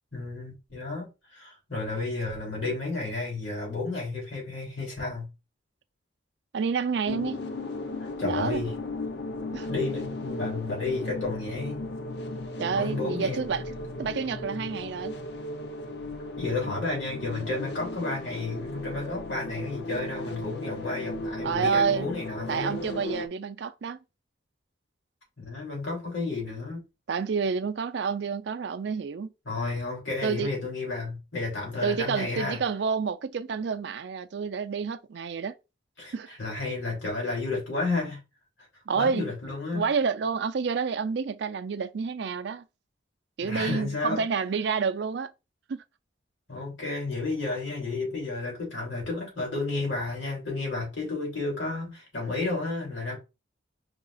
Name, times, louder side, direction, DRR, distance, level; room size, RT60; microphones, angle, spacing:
voice 1, 0.1-5.3 8.0-8.7 9.7-11.9 12.7-13.4 16.4-22.8 25.4-26.8 29.4-32.6 36.0-38.2 38.9-39.9 43.4-44.2 46.5-53.2, left 3 dB, 80° left, 2.9 m, -32 dB
voice 2, 6.5-7.4 8.2-8.6 9.5-9.7 12.6-13.7 14.0-15.1 16.6-16.7 21.4-22.1 22.5-24.0 27.1-29.3 30.2-30.5 31.8-35.5 36.1-36.3 38.9-39.3 39.7-42.6 43.4-45.3 45.7-45.8, right 5 dB, 65° right, 0.4 m, -29 dB
sound 1, 7.1-23.3, left 2 dB, 60° left, 0.6 m, -36 dB
4.9 x 2.4 x 3.8 m
head